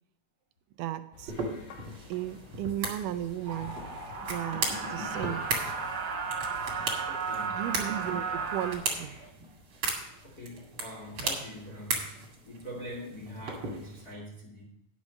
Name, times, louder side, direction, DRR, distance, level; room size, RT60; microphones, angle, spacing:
voice 1, 0.8-1.3 2.1-3.8 4.3-5.5 7.4-9.3, right 12 dB, 80° right, 9 dB, 1.9 m, -35 dB
sound 1, 1.1-9.3, left 6 dB, 70° left, 2.1 m, -52 dB
sound 2, 1.3-14.1, right 3 dB, 40° right, 2.4 m, -37 dB
sound 3, 3.5-8.7, right 5 dB, 60° right, 1.1 m, -34 dB
voice 2, 7.1-7.6 10.2-12.1 12.4-14.7, equal, 30° left, -5 dB, 2.1 m, -43 dB
9.9 x 6.2 x 6.2 m, 0.82 s
omnidirectional pair, 4.0 m